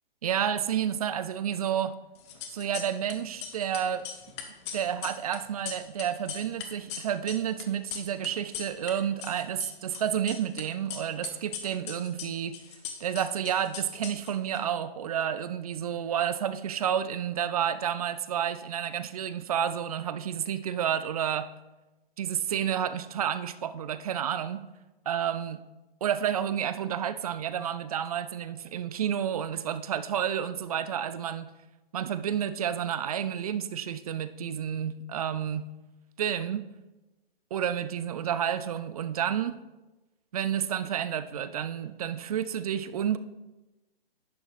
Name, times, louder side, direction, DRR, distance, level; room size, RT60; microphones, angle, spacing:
voice 1, 0.2-2.0 2.5-4.1 4.7-12.6 13.0-21.5 22.2-24.6 25.1-25.6 26.0-31.5 31.9-35.7 36.2-36.6 37.5-39.6 40.3-43.2, right 9 dB, 40° right, 13 dB, 0.4 m, -30 dB
sound 1, 2.2-3.1 3.4-8.9 9.2-10.6 10.9-14.6, left 8 dB, 30° left, 0.9 m, -39 dB
11.0 x 6.1 x 3.4 m, 1.1 s
figure-of-eight pair, 135°, 30 cm